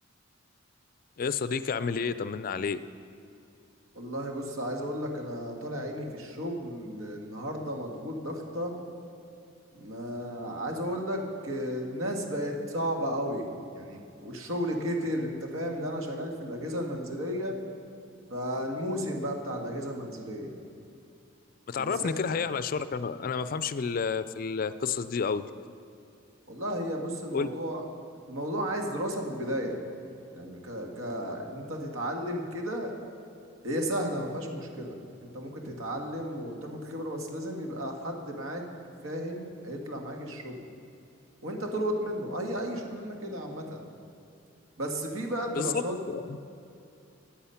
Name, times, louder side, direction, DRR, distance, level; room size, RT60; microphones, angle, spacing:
voice 1, 1.2-2.8 21.7-25.5 27.3-27.5 45.6-46.4, left 5 dB, 40° left, 14 dB, 0.3 m, -30 dB
voice 2, 4.0-8.8 9.7-13.5 13.7-17.6 18.3-20.6 21.8-22.2 26.5-27.9 28.3-29.8 30.3-32.9 33.6-35.0 35.2-38.6 39.0-40.7 41.4-43.9 44.8-46.0, equal, 80° right, 2 dB, 1.8 m, -33 dB
14.0 x 8.6 x 5.7 m, 2.6 s
head